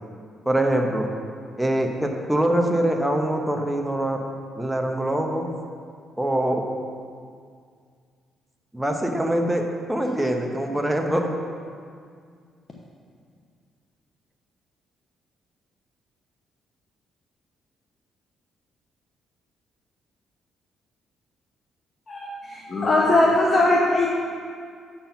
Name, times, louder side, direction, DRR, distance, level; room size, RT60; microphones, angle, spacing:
voice 1, 0.4-1.1 1.6-4.2 4.6-5.5 6.2-6.6 8.7-11.3, right 1 dB, 5° right, 2 dB, 0.8 m, -24 dB
voice 2, 22.1-24.1, left 2 dB, 35° left, -3 dB, 0.9 m, -20 dB
7.3 x 4.4 x 6.9 m, 2.1 s
cardioid pair, 90°, 0 cm